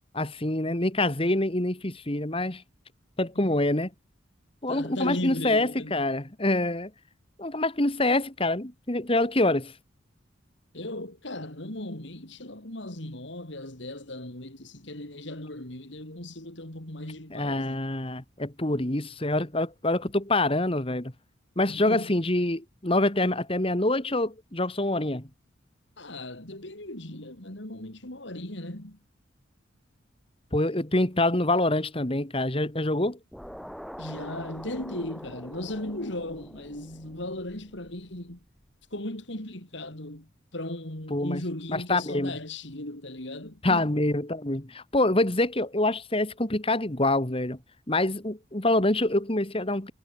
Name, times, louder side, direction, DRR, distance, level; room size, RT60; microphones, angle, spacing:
voice 1, 0.1-2.6 3.2-3.9 4.6-6.9 7.4-9.7 17.3-21.1 21.6-25.3 30.5-33.2 41.1-41.4 41.7-42.3 43.6-47.6 47.9-49.9, left 2 dB, 30° left, 2.0 m, -26 dB
voice 2, 4.7-6.0 10.7-17.9 21.7-22.1 26.0-29.0 34.0-38.4 38.9-43.9, left 1 dB, 65° left, 3.6 m, -37 dB
sound 1, 33.3-38.6, equal, ahead, 7.7 m, -44 dB
head